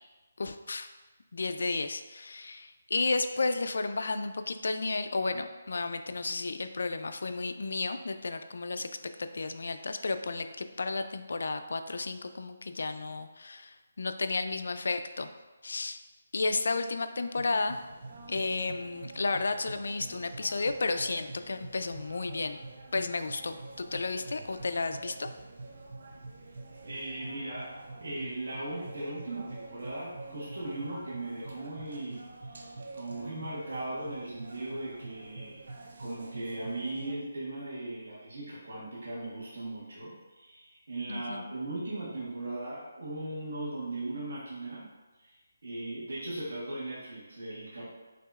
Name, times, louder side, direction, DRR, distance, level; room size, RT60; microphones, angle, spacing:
voice 1, 0.4-0.9 1.3-8.9 9.2-15.3 15.6-16.0 16.3-17.8 18.3-22.6 22.9-25.3 41.1-41.5, left 3 dB, 70° left, 8 dB, 0.3 m, -32 dB
sound 1, 17.3-37.1, right 3 dB, 55° right, 0.5 m, -46 dB
voice 2, 26.8-27.7 28.0-35.6 36.0-44.8 45.2-45.3 45.6-47.9, right 2 dB, 85° right, -8 dB, 1.5 m, -38 dB
5.9 x 2.8 x 2.4 m, 1.2 s
hypercardioid pair, 170°, 0 cm